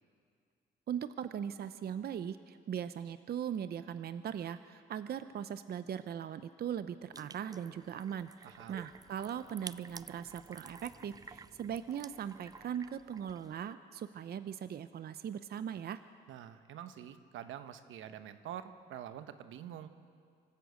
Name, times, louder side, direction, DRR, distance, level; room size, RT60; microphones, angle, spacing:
voice 1, 0.9-16.0, right 9 dB, 55° right, 12 dB, 0.6 m, -39 dB
sound 1, 7.1-13.7, right 4 dB, 20° right, 0.4 m, -52 dB
voice 2, 8.4-8.8 16.3-19.9, right 10 dB, 85° right, 10 dB, 1.1 m, -46 dB
25.0 x 13.0 x 8.2 m, 2.3 s
cardioid pair, 90°, 20 cm